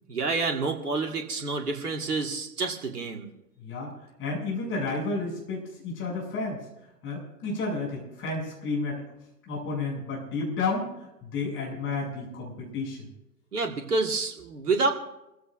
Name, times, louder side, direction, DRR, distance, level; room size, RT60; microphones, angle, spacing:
voice 1, 0.1-3.3 13.5-14.9, right 3 dB, 70° right, 4 dB, 2.1 m, -28 dB
voice 2, 3.6-3.9 4.2-6.6 7.0-9.0 9.5-13.1, left 3 dB, 25° left, -2 dB, 7.7 m, -31 dB
28.0 x 15.5 x 2.6 m, 0.90 s
figure-of-eight pair, 105°, 47 cm